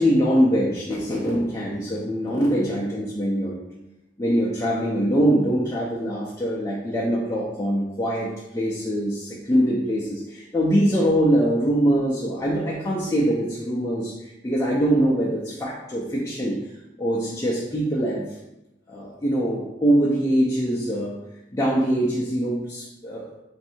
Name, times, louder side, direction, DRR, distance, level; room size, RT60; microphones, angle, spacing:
voice 1, 0.0-3.6 4.2-16.6 17.0-18.3 18.9-21.1 21.5-23.2, equal, 15° left, -7 dB, 0.5 m, -23 dB
3.2 x 2.7 x 4.3 m, 0.93 s
head